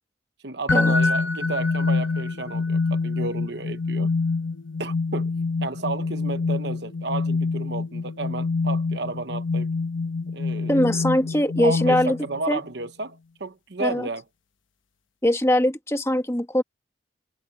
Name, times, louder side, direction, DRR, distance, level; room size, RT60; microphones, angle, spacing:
voice 1, 0.4-4.1 4.8-5.3 5.6-9.7 10.3-11.0 11.6-14.2, right 3 dB, 60° right, 1.0 m, -32 dB
sound 1, 0.7-12.4, left 3 dB, 85° left, 1.0 m, -26 dB
voice 2, 10.7-12.2 12.5-12.6 13.8-14.1 15.2-16.6, left 1 dB, 15° left, 1.6 m, -22 dB
head